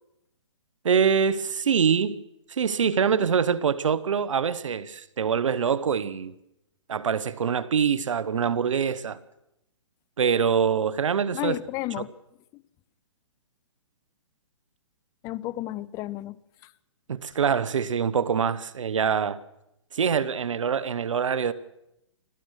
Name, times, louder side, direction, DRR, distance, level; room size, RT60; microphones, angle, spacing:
voice 1, 0.8-2.2 2.5-6.3 6.9-9.2 10.2-11.5 17.1-19.4 19.9-21.5, right 7 dB, 80° right, 1.2 m, -24 dB
voice 2, 11.3-12.1 12.5-12.6 15.2-16.7, left 17 dB, 20° left, 0.7 m, -33 dB
25.5 x 16.0 x 6.5 m
hypercardioid pair, 145°, 16 cm